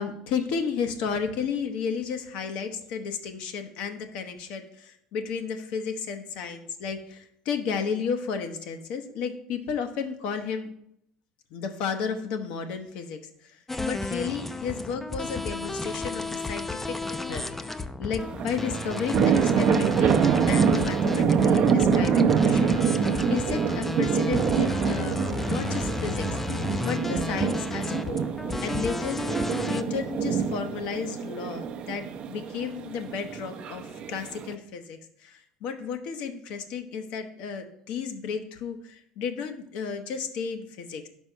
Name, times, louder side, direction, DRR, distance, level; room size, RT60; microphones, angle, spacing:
voice 1, 0.0-10.7 11.5-13.6 13.8-17.4 18.0-26.4 26.8-41.1, left 6 dB, 75° left, 6 dB, 0.8 m, -33 dB
sound 1, 13.7-29.8, left 2 dB, 10° left, 0.4 m, -33 dB
sound 2, 18.2-34.5, right 6 dB, 55° right, 0.5 m, -25 dB
5.4 x 4.4 x 6.1 m, 0.73 s
supercardioid pair, 110°, 2 cm